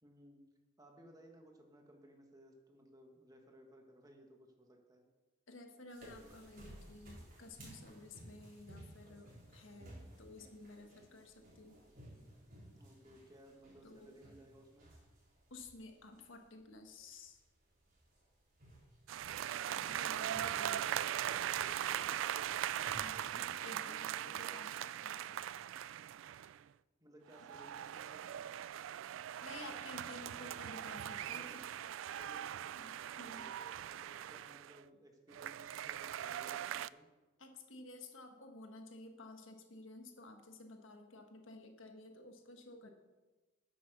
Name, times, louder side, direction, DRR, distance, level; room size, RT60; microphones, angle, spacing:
voice 1, 0.0-0.4 0.8-5.0 12.7-14.9 20.2-22.5 23.3-24.6 27.0-28.4 31.3-31.6 32.2-37.1, equal, 20° right, 2 dB, 1.5 m, -60 dB
voice 2, 5.5-9.9 10.2-11.8 13.8-14.2 15.5-17.4 19.6-20.8 22.7-25.3 29.4-31.6 32.8-33.5 37.4-42.9, left 2 dB, 80° left, 4 dB, 1.4 m, -53 dB
sound 1, 5.9-22.9, right 1 dB, 50° right, 4.4 m, -58 dB
sound 2, 19.1-26.6 27.3-34.8 35.3-36.9, right 11 dB, 80° right, 0.3 m, -40 dB
9.7 x 7.8 x 6.7 m, 1.2 s
head